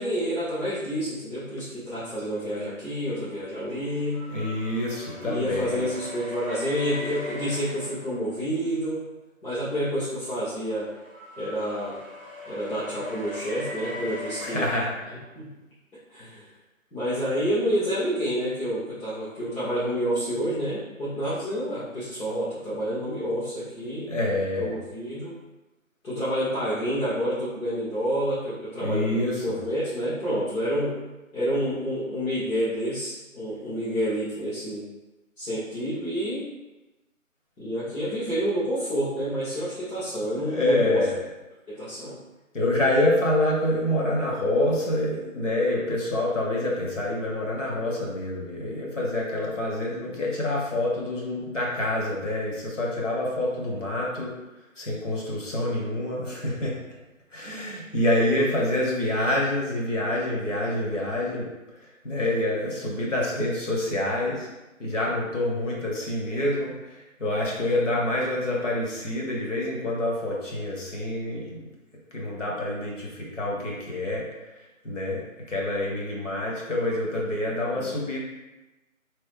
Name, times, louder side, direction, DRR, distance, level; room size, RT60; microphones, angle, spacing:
voice 1, 0.0-4.2 5.2-9.1 9.4-10.9 11.4-12.0 12.5-14.7 15.3-15.5 16.1-16.5 16.9-24.1 24.6-25.3 26.0-31.0 31.3-34.8 35.4-36.5 37.6-41.0 41.7-42.2 77.7-78.0, equal, 85° left, -11 dB, 1.4 m, -29 dB
sound 1, 3.0-8.6 10.0-15.3, left 1 dB, 45° right, 0.4 m, -41 dB
voice 2, 4.3-5.9 14.4-14.9 24.1-24.7 28.8-29.6 40.4-41.1 42.5-54.3 54.8-56.8 57.3-61.5 62.0-64.5 64.8-71.6 72.1-74.2 74.8-75.2 75.5-78.2, left 1 dB, 60° left, -3 dB, 1.0 m, -27 dB
3.0 x 2.0 x 3.2 m, 1.0 s
figure-of-eight pair, 175°, 41 cm